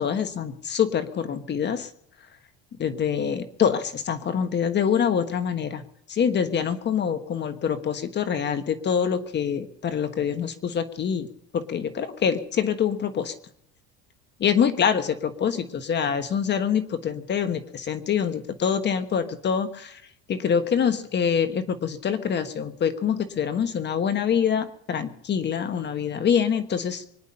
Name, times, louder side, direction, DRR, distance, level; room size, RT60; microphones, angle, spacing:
voice 1, 0.0-1.9 2.8-5.8 6.1-11.3 11.5-13.3 14.4-20.0 20.3-27.1, left 7 dB, 35° left, 10 dB, 1.3 m, -25 dB
24.5 x 10.5 x 5.5 m, 0.71 s
cardioid pair, 130°, 31 cm